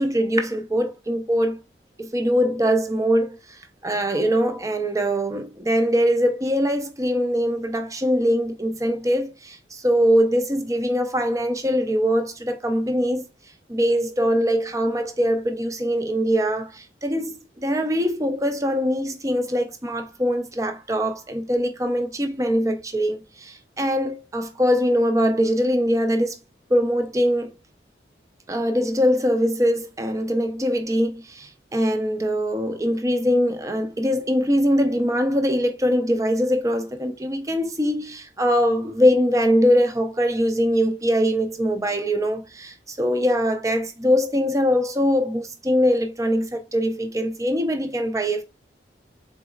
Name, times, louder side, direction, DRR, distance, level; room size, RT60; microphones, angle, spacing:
voice 1, 0.0-1.6 2.0-3.4 3.8-13.3 13.7-26.3 26.7-27.5 28.5-48.4, equal, 20° right, 0.6 m, -22 dB
4.0 x 4.0 x 2.5 m
head